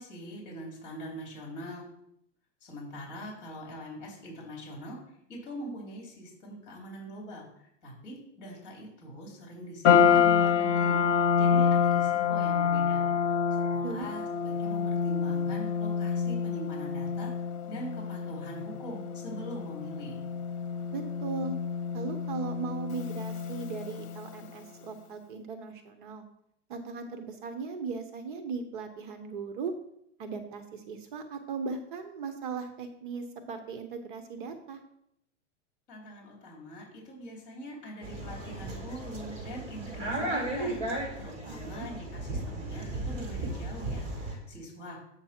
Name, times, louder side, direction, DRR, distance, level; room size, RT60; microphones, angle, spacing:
voice 1, 0.0-1.8 2.6-5.0 5.3-17.3 17.7-20.2 35.9-45.0, equal, 35° left, -2 dB, 3.3 m, -43 dB
sound 1, 9.8-24.3, left 7 dB, 65° left, 1.1 m, -27 dB
voice 2, 20.9-21.6 21.9-26.2 26.7-29.7 30.2-34.8 41.5-41.9, right 5 dB, 45° right, 7 dB, 0.7 m, -38 dB
sound 2, 38.0-44.3, right 2 dB, 20° right, 1.7 m, -35 dB
8.0 x 6.0 x 4.3 m, 0.75 s
supercardioid pair, 175°, 37 cm